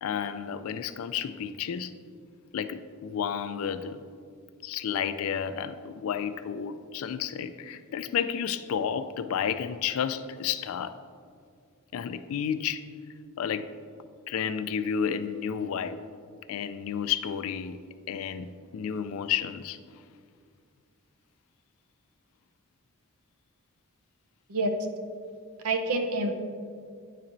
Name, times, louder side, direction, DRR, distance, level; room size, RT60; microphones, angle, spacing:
voice 1, 0.0-1.9 2.5-4.0 4.6-10.9 11.9-12.8 13.4-13.7 14.3-16.0 16.5-17.8 18.1-19.8, left 8 dB, 65° left, 11 dB, 0.3 m, -31 dB
voice 2, 25.6-26.3, right 2 dB, 75° right, 5 dB, 0.6 m, -27 dB
9.7 x 4.2 x 2.6 m, 2.2 s
head